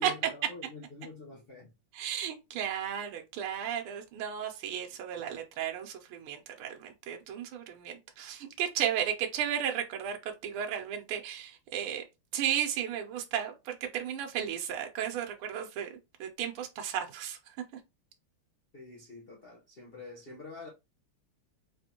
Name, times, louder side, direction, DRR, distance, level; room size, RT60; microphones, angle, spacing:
voice 1, 0.0-1.7 5.1-5.3 18.7-20.7, left 3 dB, 75° left, 0.5 m, -46 dB
voice 2, 1.9-12.0 12.3-17.6, right 9 dB, 75° right, 1.5 m, -34 dB
3.6 x 3.4 x 2.8 m
omnidirectional pair, 2.4 m